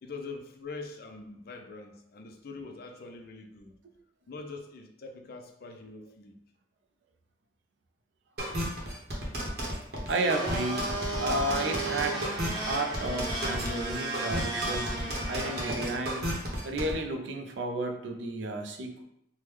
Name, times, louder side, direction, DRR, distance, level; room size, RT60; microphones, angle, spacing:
voice 1, 0.0-3.8 4.3-6.4, left 3 dB, 55° left, 4 dB, 0.4 m, -43 dB
sound 1, 8.4-16.9, equal, 60° right, 0.8 m, -33 dB
Domestic sounds home sounds, 10.1-15.7, right 2 dB, 25° right, 0.7 m, -35 dB
voice 2, 10.1-10.9 11.2-12.2 12.5-14.9 15.3-16.3 16.6-19.0, right 2 dB, 75° right, 4 dB, 0.4 m, -32 dB
3.5 x 2.1 x 3.1 m, 0.78 s
head